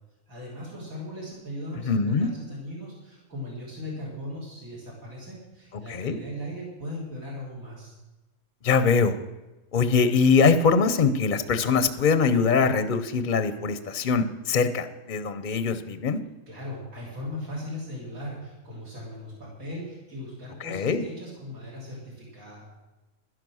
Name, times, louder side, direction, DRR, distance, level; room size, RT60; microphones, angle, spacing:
voice 1, 0.3-7.9 16.5-22.6, left 1 dB, 85° right, -4 dB, 3.9 m, -38 dB
voice 2, 1.8-2.3 5.9-6.2 8.6-9.2 9.7-16.2 20.6-21.0, left 5 dB, 45° left, 11 dB, 0.7 m, -22 dB
11.5 x 11.0 x 6.2 m, 1.1 s
omnidirectional pair, 1.4 m